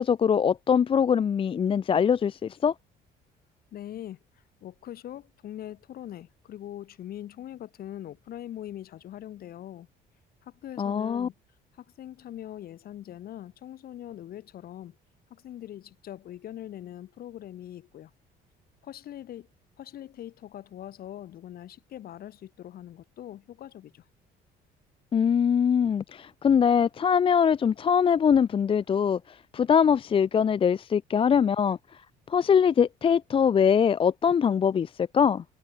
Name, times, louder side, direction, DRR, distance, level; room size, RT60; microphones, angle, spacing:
voice 1, 0.0-2.7 10.8-11.3 25.1-31.8 32.3-35.4, left 7 dB, 30° left, 0.5 m, -23 dB
voice 2, 3.7-4.2 4.6-9.9 10.4-11.3 11.8-15.0 15.3-18.1 18.8-19.5 19.8-24.0, left 12 dB, 60° left, 6.2 m, -42 dB
cardioid pair, 110°, 17 cm